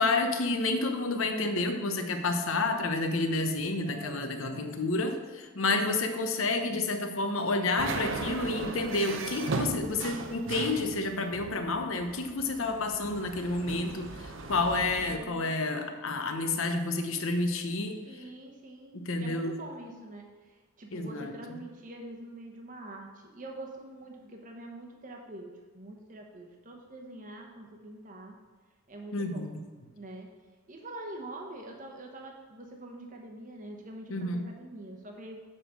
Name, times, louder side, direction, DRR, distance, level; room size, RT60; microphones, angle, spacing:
voice 1, 0.0-18.0 18.9-19.6 20.9-21.3 29.1-29.6 34.1-34.5, left 2 dB, 75° left, 6 dB, 0.9 m, -30 dB
voice 2, 3.8-4.9 15.1-15.5 18.1-28.3 28.9-29.5 29.9-30.3 30.7-35.4, right 1 dB, 40° right, 2 dB, 0.9 m, -45 dB
sound 1, 7.8-15.2, right 3 dB, 65° right, 0.7 m, -37 dB
7.2 x 5.1 x 6.2 m, 1.4 s
head